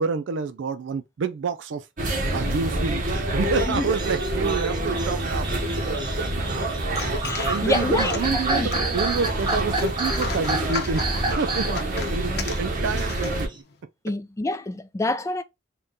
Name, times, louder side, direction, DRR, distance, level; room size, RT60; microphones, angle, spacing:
voice 1, 0.0-1.8 2.3-5.5 7.5-13.6, right 5 dB, 80° right, 0.4 m, -28 dB
sound 1, 2.0-13.5, right 1 dB, 45° right, 1.0 m, -27 dB
sound 2, 3.5-13.6, right 3 dB, 25° right, 0.6 m, -31 dB
sound 3, 6.8-13.8, left 5 dB, 60° left, 0.7 m, -37 dB
voice 2, 7.2-8.7 14.0-15.4, left 2 dB, 15° left, 0.3 m, -27 dB
3.6 x 2.2 x 3.9 m
head